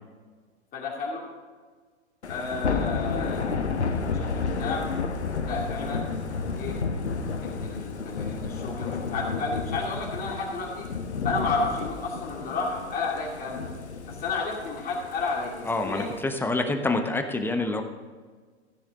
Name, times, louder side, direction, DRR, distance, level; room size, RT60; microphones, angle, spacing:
voice 1, 0.7-1.3 2.3-3.6 4.1-4.9 5.4-6.8 7.4-10.9 11.2-13.7 14.1-16.2, left 3 dB, 25° left, -4 dB, 2.6 m, -32 dB
Thunder / Rain, 2.2-16.2, left 4 dB, 75° left, 1.2 m, -31 dB
voice 2, 15.7-17.8, left 2 dB, 5° left, 6 dB, 1.0 m, -27 dB
15.5 x 10.0 x 3.8 m, 1.5 s
figure-of-eight pair, 100°, 34 cm